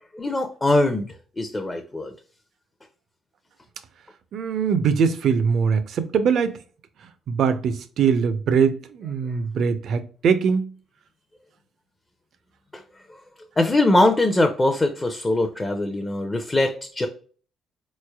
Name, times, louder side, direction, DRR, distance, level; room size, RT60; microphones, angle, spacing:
voice 1, 0.1-2.1 12.7-12.8 13.1-13.2 13.6-17.1, left 2 dB, 20° left, 0.5 m, -22 dB
voice 2, 4.3-6.6 7.3-10.7, right 6 dB, 65° right, 0.5 m, -22 dB
3.9 x 3.1 x 2.2 m
cardioid pair, 105°, 0 cm